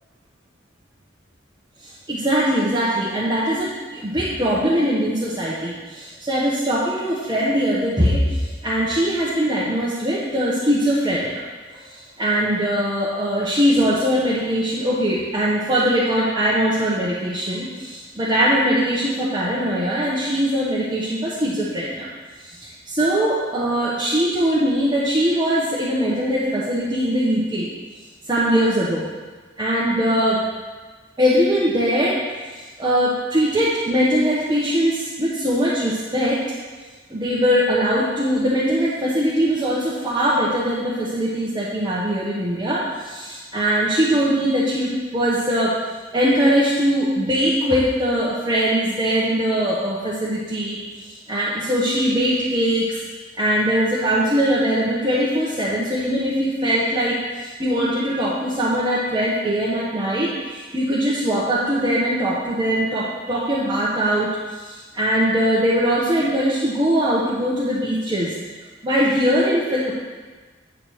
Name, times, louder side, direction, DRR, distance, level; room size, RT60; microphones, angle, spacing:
voice 1, 1.8-11.4 11.7-22.1 22.4-27.7 28.3-29.1 29.6-30.4 31.2-32.2 32.5-36.4 37.1-45.7 46.1-53.0 53.4-68.3 68.8-69.9, equal, 20° right, -8 dB, 1.0 m, -21 dB
8.9 x 3.8 x 6.3 m, 1.4 s
head